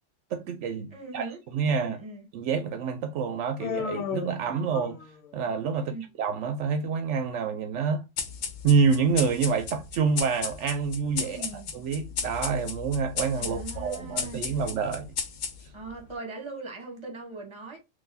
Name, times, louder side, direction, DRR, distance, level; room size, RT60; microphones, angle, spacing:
voice 1, 0.3-2.0 2.3-5.0 5.3-5.9 6.2-8.0 8.6-11.5 11.7-15.1, right 5 dB, 75° right, 0.9 m, -27 dB
voice 2, 0.9-1.4 1.7-2.3 5.7-6.1 11.2-11.7 13.4-14.6 15.7-17.8, right 3 dB, 25° right, 1.1 m, -40 dB
Human voice, 3.6-5.3, left 5 dB, 65° left, 1.0 m, -33 dB
sound 1, 8.2-15.9, left 6 dB, 85° left, 1.1 m, -35 dB
3.9 x 2.5 x 2.6 m
omnidirectional pair, 1.3 m